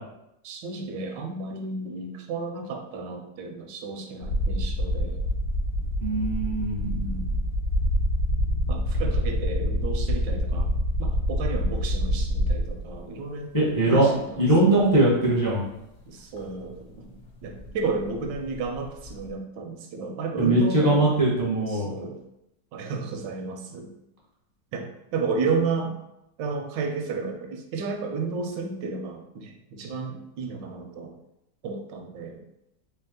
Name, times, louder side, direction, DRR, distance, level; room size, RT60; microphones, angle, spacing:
voice 1, 0.4-5.2 6.8-7.4 8.7-10.7 11.0-13.5 13.9-14.7 16.1-21.1 21.7-22.2 22.7-23.9 24.7-25.9 26.4-31.2 31.6-32.4, right 4 dB, 85° right, 4 dB, 1.3 m, -32 dB
sound 1, 4.2-13.0 14.1-14.2 16.4-16.5 16.7-19.3, equal, 50° left, 1.2 m, -27 dB
voice 2, 6.0-7.1 13.5-14.1 14.4-15.6 20.4-21.9, right 1 dB, 25° left, -6 dB, 0.5 m, -21 dB
3.4 x 2.9 x 3.6 m, 0.85 s
omnidirectional pair, 1.9 m